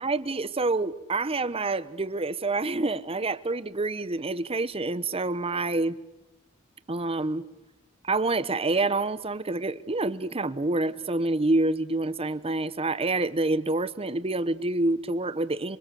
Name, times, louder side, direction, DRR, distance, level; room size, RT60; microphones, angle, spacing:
voice 1, 0.0-6.0 6.9-7.4 8.0-15.8, right 2 dB, 30° right, 1.0 m, -27 dB
27.5 x 23.5 x 7.7 m
head